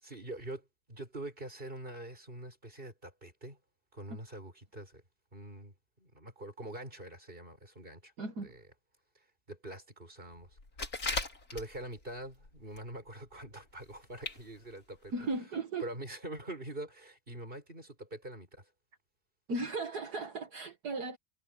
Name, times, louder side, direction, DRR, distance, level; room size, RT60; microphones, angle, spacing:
voice 1, 0.0-3.6 3.9-5.0 5.3-8.1 8.4-8.6 9.5-10.6 11.0-11.1 11.5-15.1 15.8-18.6, right 1 dB, 30° right, 6.7 m, -44 dB
voice 2, 8.2-8.5 15.1-15.9 19.5-21.2, right 3 dB, 70° right, 2.4 m, -36 dB
sound 1, 10.6-12.0 12.4-12.9 13.2-13.3 13.9-14.0 14.2-14.4 14.8-14.9 15.3-15.4, left 3 dB, 60° left, 4.1 m, -37 dB
omnidirectional pair, 1.8 m